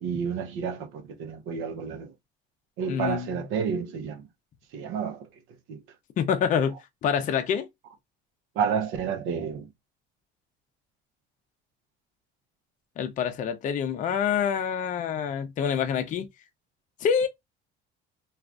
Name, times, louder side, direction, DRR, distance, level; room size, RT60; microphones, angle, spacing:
voice 1, 0.0-2.1 2.8-4.3 4.7-5.3 5.7-5.8 8.5-9.7, right 6 dB, 70° right, 0.7 m, -30 dB
voice 2, 2.9-3.3 6.2-6.7 7.0-7.7 13.0-16.3 17.0-17.3, left 7 dB, 40° left, 0.5 m, -26 dB
3.3 x 2.4 x 2.4 m
cardioid pair, 140°, 21 cm